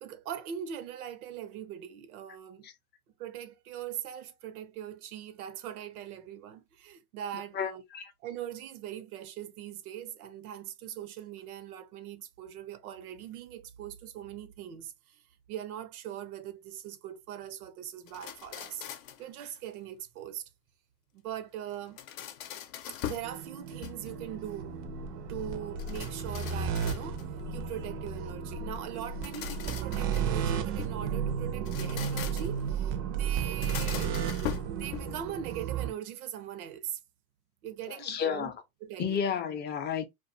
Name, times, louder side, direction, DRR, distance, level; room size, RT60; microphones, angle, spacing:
voice 1, 0.0-2.7 3.2-7.8 8.2-15.2 15.5-18.9 19.2-20.5 21.1-22.0 23.0-24.7 25.3-34.2 34.6-37.0 37.6-38.5 38.8-39.2, right 10 dB, 85° right, 0.7 m, -41 dB
voice 2, 7.5-8.1 37.9-38.5 39.0-40.0, left 7 dB, 25° left, 0.5 m, -32 dB
sound 1, 18.1-19.3 21.7-23.3 23.7-24.3 25.8-27.4 29.0-31.0 31.5-32.7 33.4-35.3, left 11 dB, 65° left, 0.6 m, -41 dB
sound 2, 23.2-35.9, right 7 dB, 40° right, 0.4 m, -33 dB
2.3 x 2.3 x 2.5 m
supercardioid pair, 120°, 43 cm